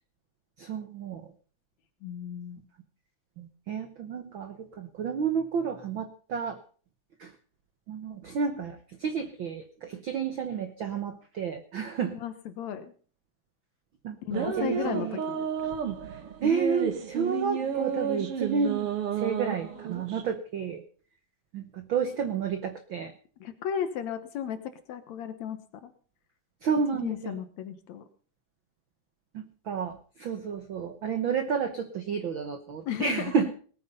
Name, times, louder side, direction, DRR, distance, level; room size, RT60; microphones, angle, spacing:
voice 1, 0.6-1.2 3.4-6.6 7.2-7.3 7.9-12.1 14.0-15.2 16.4-20.8 21.5-23.1 26.6-27.4 29.3-33.5, right 6 dB, 85° right, 8 dB, 1.0 m, -31 dB
voice 2, 2.0-2.6 12.1-12.9 14.2-15.8 20.0-20.1 23.4-24.6 24.9-25.9 27.0-28.0 32.9-33.3, left 9 dB, 65° left, 10 dB, 2.1 m, -35 dB
sound 1, 14.3-20.2, right 7 dB, 50° right, 2.2 m, -31 dB
19.0 x 9.3 x 5.4 m, 0.43 s
omnidirectional pair, 3.8 m